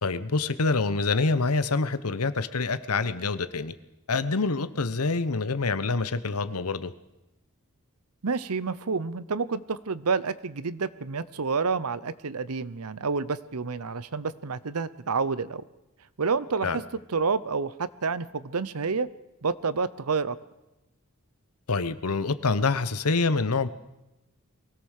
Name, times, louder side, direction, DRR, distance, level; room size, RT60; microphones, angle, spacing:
voice 1, 0.0-3.7 4.1-6.9 16.6-16.8 21.7-23.7, left 3 dB, 80° left, 13 dB, 1.0 m, -26 dB
voice 2, 8.2-15.6 16.2-16.8 17.1-19.1 19.4-20.4, right 4 dB, 90° right, 17 dB, 0.8 m, -29 dB
23.0 x 17.0 x 6.6 m, 0.96 s
head